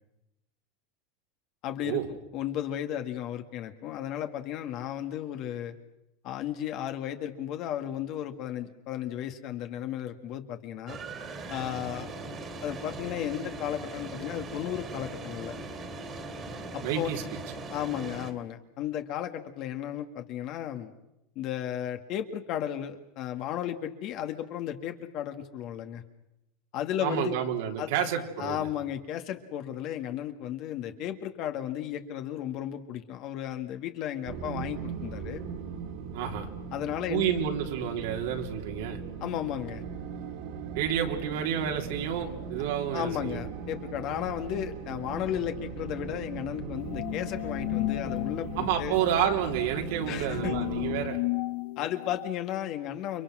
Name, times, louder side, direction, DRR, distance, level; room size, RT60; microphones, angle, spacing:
voice 1, 1.6-2.0 2.3-5.7 6.2-11.0 11.5-12.1 12.6-15.5 16.7-17.1 17.7-20.9 21.4-26.0 26.7-27.3 27.8-27.9 28.4-35.4 36.7-37.3 39.2-39.8 42.9-49.0 50.1-50.6 51.8-53.2, left 11 dB, 45° left, 6 dB, 1.8 m, -34 dB
sound 1, 10.9-18.3, right 2 dB, 25° right, 2.7 m, -40 dB
voice 2, 16.8-17.4 27.0-28.7 36.1-36.5 37.1-39.0 40.7-43.4 48.6-51.2, right 9 dB, 75° right, 2 dB, 3.6 m, -30 dB
sound 2, 34.2-51.1, right 6 dB, 60° right, 3.1 m, -39 dB
sound 3, 46.8-52.3, left 22 dB, 70° left, 1.0 m, -34 dB
30.0 x 24.0 x 6.2 m, 0.88 s
supercardioid pair, 150°, 0 cm